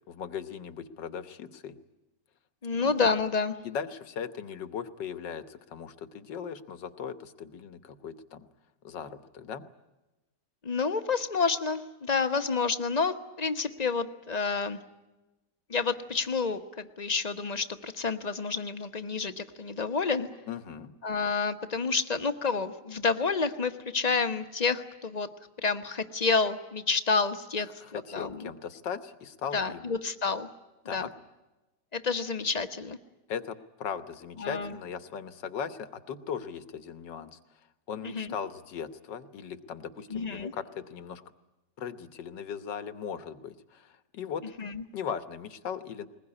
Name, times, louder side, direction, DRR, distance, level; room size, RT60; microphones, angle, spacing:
voice 1, 0.0-1.8 2.8-2.9 3.6-8.5 8.8-9.6 20.5-20.9 27.8-29.9 30.9-31.1 33.3-37.4 37.9-41.2 41.8-44.5 44.9-46.1, left 7 dB, 85° left, 11 dB, 1.8 m, -38 dB
voice 2, 2.6-3.6 10.6-14.8 15.7-20.3 21.0-25.3 25.6-28.5 29.5-30.5 30.9-31.1 31.9-33.0 34.4-34.8 38.0-38.3 40.1-40.5 44.6-44.8, left 4 dB, 30° left, 9 dB, 0.9 m, -29 dB
21.0 x 21.0 x 9.8 m, 1.0 s
omnidirectional pair, 1.9 m